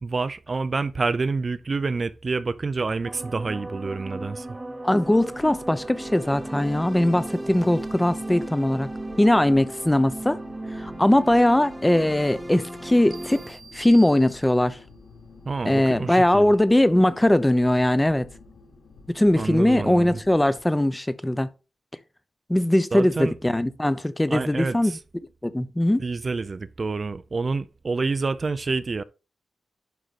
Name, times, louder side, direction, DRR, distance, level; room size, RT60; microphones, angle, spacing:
voice 1, 0.0-4.6 15.5-16.5 19.3-20.2 22.9-23.3 24.3-25.0 26.0-29.0, right 4 dB, 35° right, 0.5 m, -28 dB
sound 1, 3.0-13.5, right 1 dB, 15° right, 1.0 m, -36 dB
voice 2, 4.8-8.9 9.2-10.4 10.8-14.8 15.6-18.3 19.1-21.5 22.5-24.9 25.4-26.0, left 1 dB, 10° left, 0.7 m, -20 dB
sound 2, 5.0-20.6, left 3 dB, 90° left, 3.1 m, -49 dB
sound 3, 13.1-14.9, right 5 dB, 55° right, 1.0 m, -46 dB
11.5 x 4.7 x 4.1 m
wide cardioid pair, 145°, 0 cm